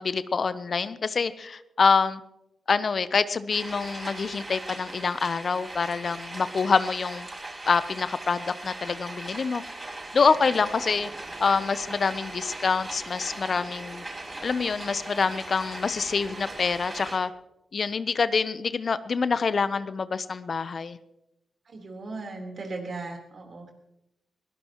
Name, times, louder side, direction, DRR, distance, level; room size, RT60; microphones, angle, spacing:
voice 1, 0.0-2.2 2.7-7.3 7.7-9.6 10.1-11.1 11.4-14.0 14.4-17.3 17.7-21.0, left 5 dB, 55° left, 14 dB, 0.7 m, -26 dB
sound 1, 3.5-17.2, right 2 dB, 30° right, 7.1 m, -39 dB
voice 2, 21.7-23.7, right 3 dB, 60° right, 2 dB, 3.8 m, -37 dB
22.0 x 17.5 x 3.0 m, 0.89 s
supercardioid pair, 45°, 0 cm